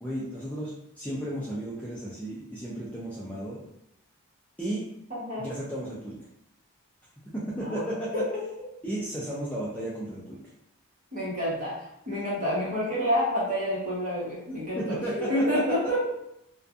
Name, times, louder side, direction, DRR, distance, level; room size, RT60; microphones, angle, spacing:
voice 1, 0.0-3.6 4.6-4.9 5.4-6.2 7.3-8.2 8.8-10.4 14.8-15.4, right 1 dB, 5° left, -7 dB, 0.3 m, -34 dB
voice 2, 5.1-5.5 7.6-8.5 11.1-16.1, equal, 35° right, -6 dB, 1.0 m, -29 dB
2.5 x 2.3 x 2.4 m, 0.79 s
head